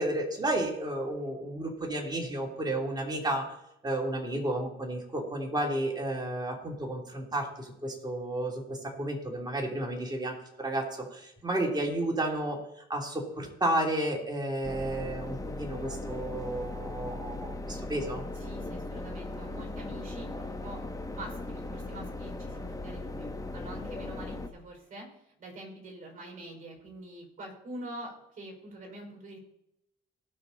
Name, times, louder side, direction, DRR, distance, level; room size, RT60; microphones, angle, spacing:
voice 1, 0.0-3.5 3.8-12.6 12.9-18.2, right 1 dB, 20° right, 0 dB, 3.2 m, -32 dB
sound 1, 14.6-24.5, left 2 dB, 15° left, 1.2 m, -38 dB
voice 2, 18.4-20.8 21.1-29.4, right 1 dB, 40° right, 2 dB, 5.3 m, -45 dB
17.5 x 6.4 x 4.1 m, 0.81 s
cardioid pair, 90°, 20 cm